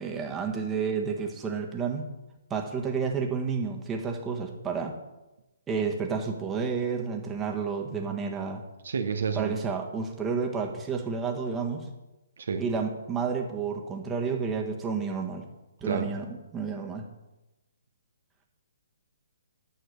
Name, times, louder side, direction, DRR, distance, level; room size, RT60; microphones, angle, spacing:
voice 1, 0.0-2.1 2.5-5.0 5.7-8.6 9.3-11.9 12.6-15.4 15.8-17.0, right 5 dB, 15° right, 2 dB, 1.5 m, -30 dB
voice 2, 8.8-9.6 12.4-12.6 15.8-16.1, right 5 dB, 65° right, 6 dB, 1.0 m, -30 dB
9.5 x 6.5 x 6.4 m, 1.0 s
figure-of-eight pair, 135°, 0 cm